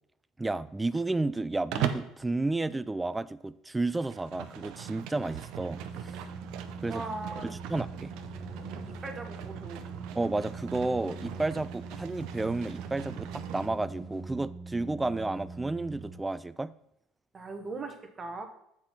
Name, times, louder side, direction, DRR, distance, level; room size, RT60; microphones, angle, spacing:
voice 1, 0.4-6.2 6.8-7.0 7.4-8.1 10.2-16.7, right 2 dB, 15° right, 0.3 m, -32 dB
Livestock farm animals working animals, 1.7-2.2 3.9-13.7, right 11 dB, 75° right, 0.6 m, -40 dB
sound 1, 5.5-16.1, right 3 dB, 5° left, 1.7 m, -43 dB
voice 2, 6.9-7.5 8.9-9.8 17.3-18.4, right 3 dB, 35° right, 1.2 m, -39 dB
7.5 x 4.4 x 5.9 m
supercardioid pair, 85°, 0 cm